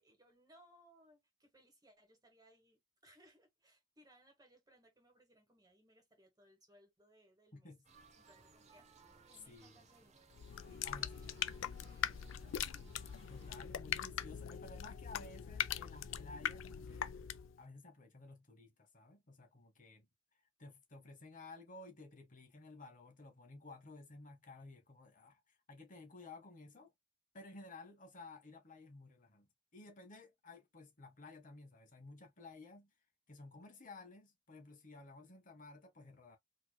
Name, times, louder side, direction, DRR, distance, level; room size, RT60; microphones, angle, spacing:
voice 1, 0.0-7.7 8.2-10.1 10.6-11.5 11.8-12.9, equal, 20° right, 1.6 m, -67 dB
voice 2, 7.5-7.8 9.5-9.8 10.8-11.5 13.3-17.1 17.6-20.1 20.4-26.9 27.3-32.9 33.3-36.4, left 3 dB, 40° left, 1.1 m, -55 dB
sound 1, 7.8-13.5, right 4 dB, 35° right, 0.7 m, -63 dB
sound 2, 10.3-17.6, left 9 dB, 75° left, 0.4 m, -41 dB
4.1 x 3.1 x 2.2 m
head